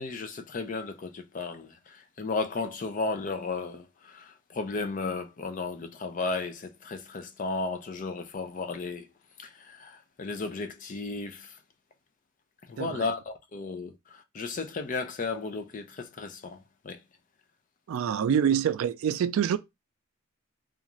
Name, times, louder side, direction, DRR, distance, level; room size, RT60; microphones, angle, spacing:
voice 1, 0.0-9.1 9.4-11.6 12.7-17.0, left 3 dB, 40° left, 0.4 m, -34 dB
voice 2, 17.9-19.6, right 8 dB, 80° right, 0.3 m, -26 dB
2.4 x 2.4 x 2.9 m
head